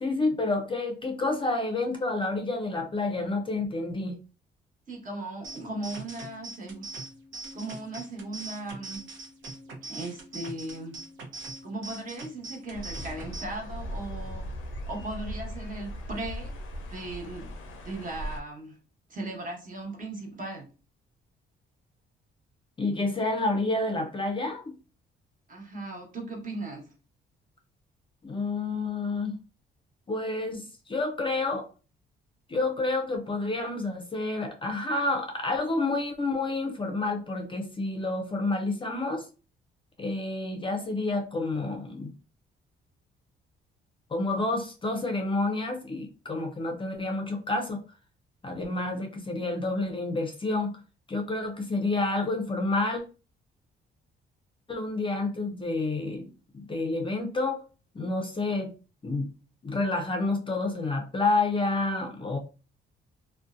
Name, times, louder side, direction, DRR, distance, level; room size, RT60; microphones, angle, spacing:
voice 1, 0.0-4.1 22.8-24.7 28.2-29.4 30.1-31.7 32.5-39.3 40.0-42.1 44.1-47.8 48.4-50.7 51.1-53.0 54.7-56.3 56.5-57.6 57.9-58.7 59.0-59.3 59.6-62.4, left 2 dB, 25° left, 4 dB, 0.5 m, -29 dB
voice 2, 4.9-7.1 7.5-9.0 9.8-11.0 11.6-14.4 14.9-16.5 16.9-17.5 17.8-18.8 19.1-20.7 25.5-26.9, right 2 dB, 40° right, 1 dB, 1.1 m, -37 dB
sound 1, 5.4-13.4, right 2 dB, 75° right, 0.8 m, -42 dB
sound 2, 12.7-18.4, equal, 85° left, 0.5 m, -38 dB
2.6 x 2.1 x 2.4 m, 0.34 s
cardioid pair, 90°, 20 cm